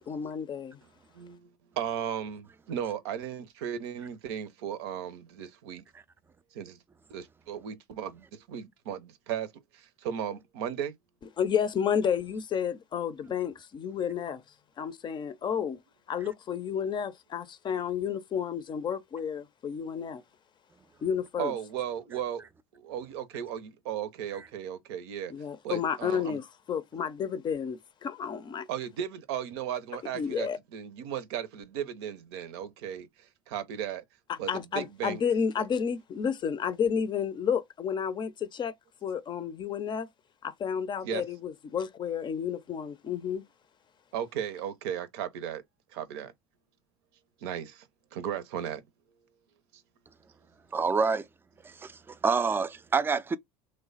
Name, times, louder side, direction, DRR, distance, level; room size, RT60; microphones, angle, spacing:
voice 1, 0.1-0.8 11.4-14.4 14.8-15.8 16.1-20.2 21.0-21.5 25.3-28.7 30.1-30.6 34.3-38.7 39.0-40.1 40.4-43.4, left 7 dB, 35° left, 0.5 m, -31 dB
voice 2, 1.1-1.5 1.8-5.8 6.5-6.8 7.1-11.0 21.4-22.5 22.7-25.3 25.6-26.4 28.7-34.0 34.4-35.2 35.6-35.7 41.0-41.2 44.1-45.6 45.9-46.3 47.4-48.8 49.7-49.8, right 9 dB, 75° right, 0.6 m, -36 dB
voice 3, 50.7-51.3 51.6-53.4, right 5 dB, 15° right, 0.4 m, -27 dB
3.1 x 2.2 x 3.9 m
hypercardioid pair, 85°, 14 cm